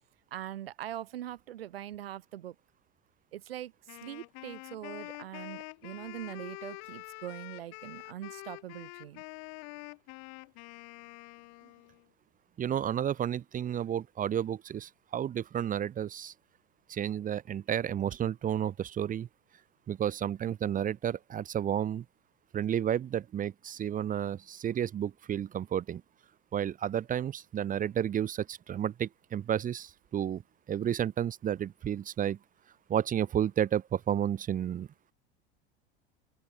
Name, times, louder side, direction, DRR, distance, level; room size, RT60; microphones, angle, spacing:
voice 1, 0.3-2.5 3.3-9.2 11.6-11.7, right 12 dB, 85° right, 4.6 m, -42 dB
Wind instrument woodwind instrument, 3.9-12.0, left 40 dB or more, 60° left, 1.7 m, -46 dB
voice 2, 12.6-16.3 16.9-19.3 19.9-22.0 22.5-26.0 26.5-30.4 30.7-32.4 32.9-34.9, right 9 dB, 30° right, 0.8 m, -31 dB
open air
hypercardioid pair, 95°, 29 cm